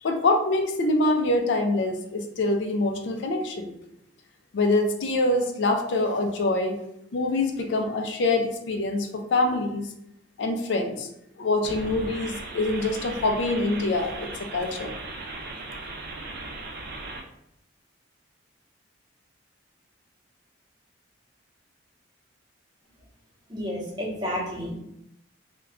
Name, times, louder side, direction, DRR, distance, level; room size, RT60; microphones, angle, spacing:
voice 1, 0.0-3.7 4.5-6.8 7.1-9.9 10.4-11.1 11.4-14.9, left 2 dB, 65° left, 4 dB, 0.4 m, -25 dB
sound 1, 11.6-17.2, right 2 dB, 50° right, 0.4 m, -37 dB
voice 2, 23.5-24.8, equal, 25° right, -4 dB, 0.8 m, -31 dB
2.2 x 2.2 x 3.5 m, 0.80 s
head